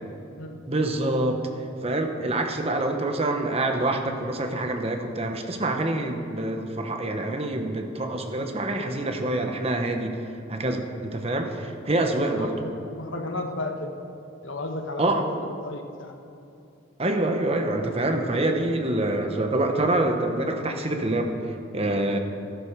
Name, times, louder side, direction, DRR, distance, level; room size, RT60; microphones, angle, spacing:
voice 1, 0.7-1.4 1.8-10.2 10.5-12.5 15.0-15.3 17.0-22.2, right 2 dB, 30° right, 5 dB, 1.0 m, -26 dB
voice 2, 12.0-14.0 14.4-16.2, left 2 dB, 65° left, 4 dB, 1.3 m, -34 dB
13.5 x 11.5 x 6.6 m, 2.6 s
head